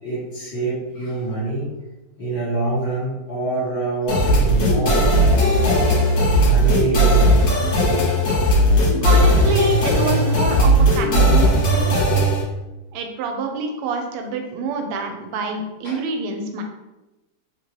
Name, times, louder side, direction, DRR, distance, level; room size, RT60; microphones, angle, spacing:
voice 1, 0.0-1.7 2.2-7.5 15.8-16.0, right 2 dB, 35° left, -10 dB, 1.5 m, -26 dB
sound 1, 4.1-12.4, equal, 65° left, 0.7 m, -17 dB
voice 2, 9.0-11.9 12.9-16.6, right 4 dB, 90° right, 4 dB, 1.5 m, -26 dB
3.3 x 2.9 x 2.9 m, 1.0 s
omnidirectional pair, 2.4 m